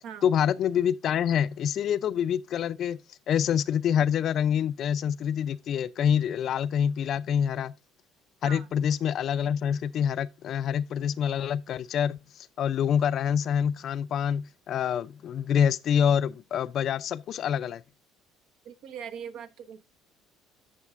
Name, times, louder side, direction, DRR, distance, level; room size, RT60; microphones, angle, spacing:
voice 1, 0.2-3.0 3.3-7.7 8.4-17.8, left 8 dB, 50° left, 0.4 m, -26 dB
voice 2, 18.6-19.8, right 8 dB, 70° right, 1.1 m, -41 dB
11.0 x 6.4 x 2.4 m
supercardioid pair, 105°, 0 cm